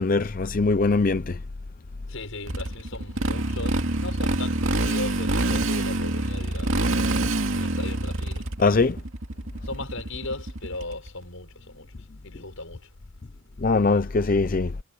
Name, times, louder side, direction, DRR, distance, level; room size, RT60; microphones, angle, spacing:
voice 1, 0.0-1.4 8.6-9.0 13.6-14.7, left 3 dB, 40° left, 0.5 m, -21 dB
voice 2, 2.1-7.0 7.5-8.5 9.6-12.9, left 2 dB, 70° left, 6.2 m, -37 dB
Motorcycle, 2.5-11.1, right 1 dB, 65° right, 2.4 m, -26 dB
head